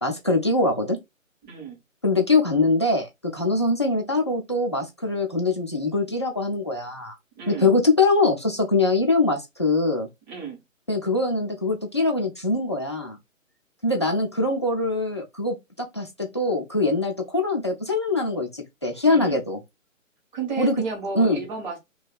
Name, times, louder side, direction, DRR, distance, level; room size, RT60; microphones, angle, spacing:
voice 1, 0.0-1.0 2.0-7.2 7.5-10.1 10.9-13.2 13.8-19.6 20.6-20.7 21.1-21.4, left 2 dB, 20° left, 0.4 m, -23 dB
voice 2, 1.4-1.8 7.3-7.7 10.3-10.6 19.1-19.4 20.3-21.8, right 5 dB, 35° right, 1.6 m, -32 dB
3.0 x 2.8 x 3.9 m
figure-of-eight pair, 135°, 40 cm